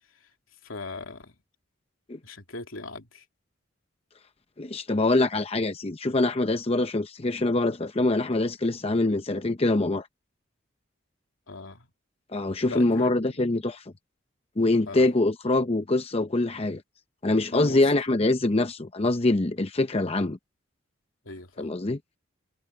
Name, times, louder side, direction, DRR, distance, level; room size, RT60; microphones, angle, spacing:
voice 1, 0.6-1.3 2.2-3.2 11.5-11.9 12.7-13.5 14.9-15.1 17.5-17.9 21.2-21.7, left 2 dB, 80° left, 2.9 m, -39 dB
voice 2, 4.6-10.1 12.3-13.9 14.6-16.8 17.2-20.4 21.6-22.0, left 2 dB, 30° left, 0.7 m, -24 dB
head